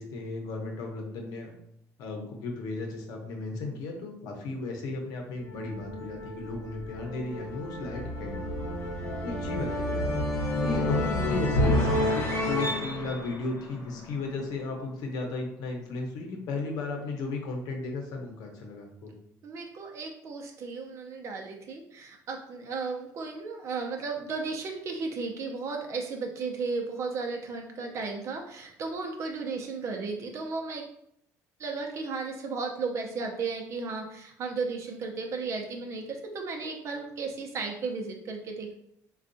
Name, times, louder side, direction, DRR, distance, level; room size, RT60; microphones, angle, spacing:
voice 1, 0.0-1.5 2.0-8.4 9.2-10.1 10.6-19.1, left 3 dB, 75° left, 2 dB, 0.8 m, -35 dB
sound 1, 5.4-14.4, left 1 dB, 45° left, 1.1 m, -30 dB
voice 2, 19.4-30.8 31.6-38.7, right 4 dB, 45° right, 3 dB, 0.6 m, -34 dB
4.4 x 2.3 x 2.6 m, 0.73 s
cardioid pair, 145°, 7 cm